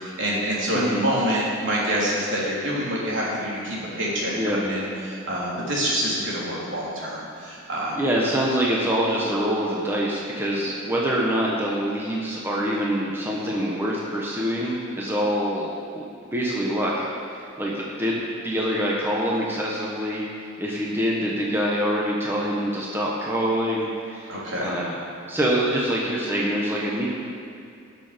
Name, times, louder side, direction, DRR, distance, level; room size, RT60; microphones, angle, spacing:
voice 1, 0.0-8.0 24.3-24.8, equal, 65° right, -6 dB, 3.4 m, -26 dB
voice 2, 8.0-15.7 16.3-24.9 25.3-27.1, equal, 10° right, -5 dB, 1.2 m, -25 dB
18.0 x 6.8 x 5.2 m, 2.4 s
head